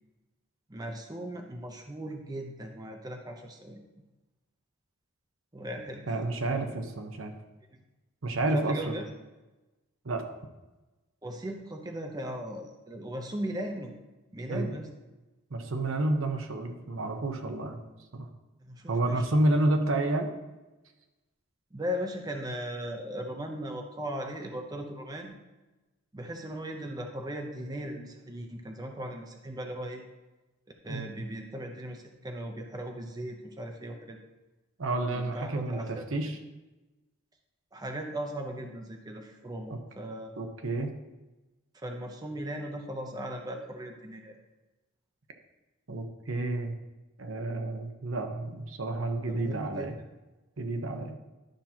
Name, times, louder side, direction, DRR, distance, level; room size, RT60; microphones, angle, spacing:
voice 1, 0.7-3.8 5.5-6.2 8.5-9.1 11.2-13.9 14.3-14.9 18.6-19.2 21.7-25.4 26.1-30.0 30.8-34.2 35.1-36.1 37.7-40.3 41.7-44.3 49.3-49.9, equal, 20° right, 3 dB, 0.7 m, -38 dB
voice 2, 6.1-7.3 8.2-9.0 10.0-10.2 14.5-14.7 15.5-17.8 18.1-18.3 18.9-20.3 30.9-31.1 34.8-36.4 40.4-40.9 45.9-46.7 47.2-49.9 50.6-51.1, right 2 dB, 75° right, 5 dB, 0.9 m, -30 dB
11.5 x 5.8 x 2.9 m, 1.1 s
head